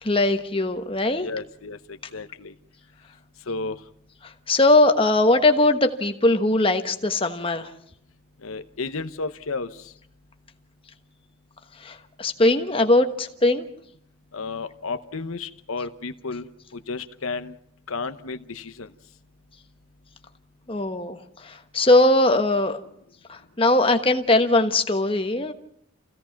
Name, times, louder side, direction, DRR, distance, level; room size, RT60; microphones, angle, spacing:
voice 1, 0.0-1.3 4.2-7.7 11.8-13.7 20.7-22.8 23.3-25.5, left 2 dB, 25° left, 6 dB, 1.2 m, -20 dB
voice 2, 1.2-2.5 3.5-3.8 8.4-9.9 14.3-17.6 17.9-18.9, left 3 dB, 90° left, 11 dB, 0.9 m, -33 dB
28.5 x 16.5 x 5.9 m, 0.68 s
head